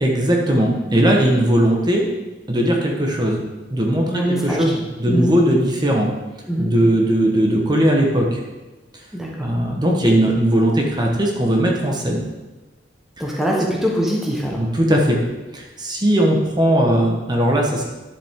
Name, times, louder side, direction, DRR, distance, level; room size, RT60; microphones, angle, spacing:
voice 1, 0.0-2.1 2.5-3.4 3.7-6.1 6.6-8.4 9.4-12.2 14.5-15.2 15.5-17.8, right 1 dB, 25° right, 0 dB, 1.3 m, -18 dB
voice 2, 4.1-4.6 5.0-5.3 6.5-6.7 9.1-9.5 13.2-14.6, equal, ahead, -3 dB, 1.2 m, -22 dB
10.5 x 7.6 x 3.7 m, 1.1 s
head